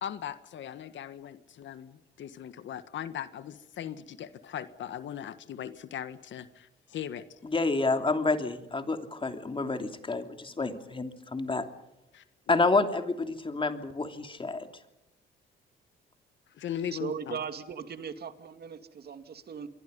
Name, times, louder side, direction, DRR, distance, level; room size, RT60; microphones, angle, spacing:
voice 1, 0.0-7.2 12.1-12.2 16.5-17.4, left 9 dB, 70° left, 12 dB, 1.5 m, -39 dB
voice 2, 7.4-11.6 12.5-14.7, left 3 dB, 25° left, 7 dB, 3.0 m, -29 dB
voice 3, 16.9-19.7, right 7 dB, 55° right, 9 dB, 2.4 m, -38 dB
26.5 x 23.5 x 5.4 m, 0.90 s
cardioid pair, 90°, 20 cm